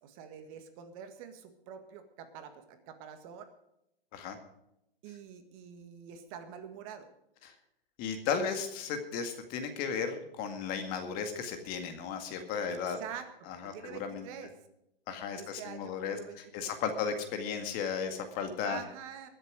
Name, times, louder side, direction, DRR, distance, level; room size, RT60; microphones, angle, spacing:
voice 1, 0.0-3.5 5.0-7.1 12.7-14.5 15.3-17.1 18.6-19.3, right 8 dB, 35° right, 8 dB, 1.8 m, -46 dB
voice 2, 8.0-13.0 13.5-14.3 15.1-18.8, left 6 dB, 30° left, 7 dB, 2.0 m, -35 dB
22.0 x 7.7 x 4.9 m, 0.82 s
hypercardioid pair, 140°, 29 cm